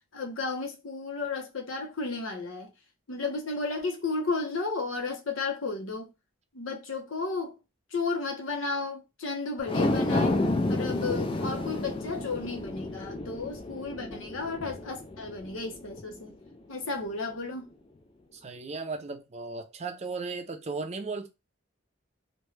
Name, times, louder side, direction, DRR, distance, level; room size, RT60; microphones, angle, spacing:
voice 1, 0.1-2.7 3.1-6.1 6.5-7.5 7.9-10.4 10.7-16.3 16.7-17.7, left 3 dB, 85° left, 0.8 m, -33 dB
sound 1, 9.6-16.1 16.5-16.6, left 2 dB, 25° left, 0.3 m, -30 dB
voice 2, 18.3-21.3, right 4 dB, 35° right, 0.4 m, -36 dB
2.6 x 2.2 x 3.1 m
head